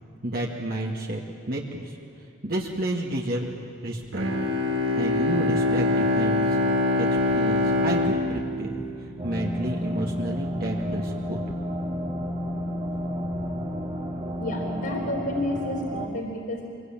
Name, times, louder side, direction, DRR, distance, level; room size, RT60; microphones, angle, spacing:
voice 1, 0.2-2.0 2.4-3.5 3.8-4.3 4.9-6.6 7.0-8.8 9.2-11.4, right 1 dB, 50° right, -2 dB, 2.0 m, -30 dB
Bowed string instrument, 4.1-9.7, left 2 dB, 85° right, 3.2 m, -24 dB
sound 1, 9.2-16.1, equal, 30° right, 1.7 m, -31 dB
voice 2, 14.4-16.7, left 1 dB, 65° left, -5 dB, 3.8 m, -30 dB
25.5 x 23.5 x 9.0 m, 2.5 s
head